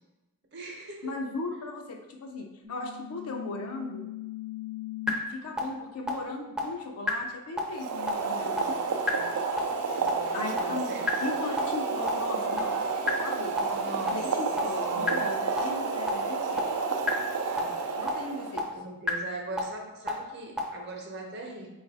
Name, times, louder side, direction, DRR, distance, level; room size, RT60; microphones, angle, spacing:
voice 1, 0.5-1.2 8.4-9.4 9.9-11.1 13.5-14.3 14.5-15.3 17.6-17.8 18.7-21.7, right 2 dB, 50° right, 1 dB, 0.8 m, -41 dB
voice 2, 1.0-4.1 5.3-8.6 10.3-12.8 13.2-13.6 14.1-16.7 18.0-18.7, left 3 dB, 75° left, 3 dB, 0.6 m, -37 dB
sound 1, 2.6-5.1 5.6-5.7 6.1-6.2 6.6-6.7 7.1-7.2 7.6-7.7 8.1-8.2 8.6-8.7 9.1-9.2 9.6-9.7 10.1-10.2 10.6-10.7 11.1-11.2 11.6-11.7 12.1-12.2 12.6-12.7 13.1-13.2 13.6-13.7 14.1-14.2 14.6-14.7 15.1-15.2 15.6-15.7 16.1-16.2 16.6-16.7 17.1-17.2 17.6-17.7 18.1-18.2 18.6-18.7 19.1-19.2 19.6-19.7 20.1-20.2 20.6-20.7, left 3 dB, 5° right, 0.5 m, -31 dB
Boiling, 7.7-18.7, right 4 dB, 75° right, 0.5 m, -30 dB
4.0 x 2.4 x 4.0 m, 1.0 s
head